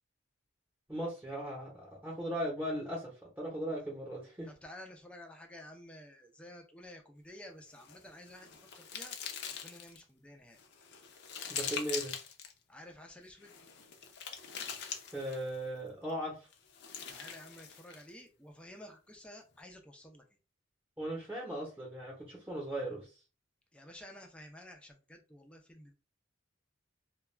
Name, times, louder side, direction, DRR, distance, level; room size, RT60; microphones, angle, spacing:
voice 1, 0.9-3.1 3.4-4.5 11.5-12.1 15.1-16.5 21.0-23.1, right 1 dB, 10° right, -4 dB, 0.8 m, -38 dB
voice 2, 4.5-9.1 9.6-10.6 12.7-13.5 17.1-20.2 23.7-25.9, left 1 dB, 5° left, 2 dB, 0.4 m, -52 dB
sound 1, 7.7-10.0 10.6-12.5 13.4-15.6 16.5-18.1, left 7 dB, 60° left, 0.5 m, -43 dB
2.3 x 2.2 x 3.2 m, 0.33 s
head